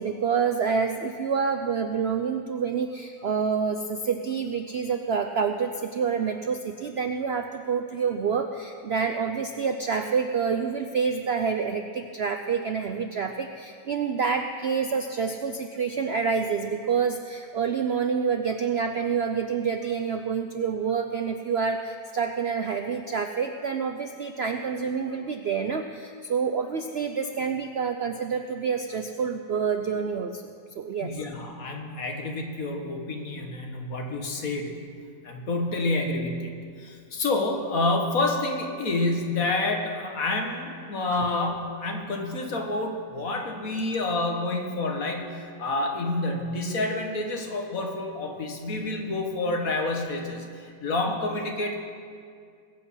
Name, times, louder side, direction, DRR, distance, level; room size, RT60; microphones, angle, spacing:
voice 1, 0.0-31.1 41.1-41.2, right 6 dB, 85° right, 6 dB, 0.5 m, -28 dB
voice 2, 31.0-34.7 35.2-36.5 36.8-51.8, left 2 dB, 55° left, 2 dB, 1.8 m, -28 dB
21.0 x 8.6 x 5.7 m, 2.2 s
omnidirectional pair, 1.9 m